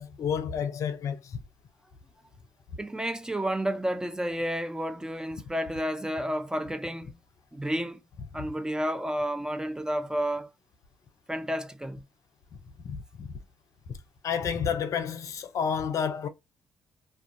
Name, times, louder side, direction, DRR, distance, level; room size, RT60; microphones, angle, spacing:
voice 1, 0.0-1.4 12.8-13.3 13.9-14.0 14.2-16.3, left 7 dB, 60° left, 0.5 m, -30 dB
voice 2, 2.8-7.2 7.5-8.0 8.3-10.5 11.3-12.0, equal, 10° right, 0.5 m, -31 dB
2.3 x 2.2 x 2.6 m
hypercardioid pair, 50°, 6 cm